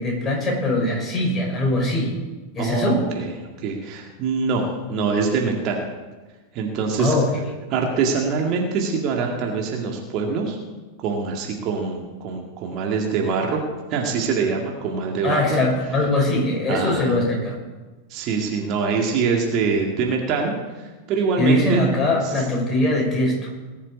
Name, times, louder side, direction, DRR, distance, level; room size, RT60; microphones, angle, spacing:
voice 1, 0.0-2.1 2.5-3.0 7.0-7.3 15.2-17.5 21.4-23.5, left 1 dB, 20° left, -1 dB, 6.1 m, -21 dB
voice 2, 2.6-3.3 3.6-5.8 6.5-7.1 7.7-10.6 11.0-13.6 13.9-15.6 16.7-17.2 18.1-21.9 22.2-22.5, right 5 dB, 40° right, 1 dB, 2.1 m, -24 dB
19.5 x 7.3 x 8.4 m, 1.3 s
figure-of-eight pair, 90°, 0 cm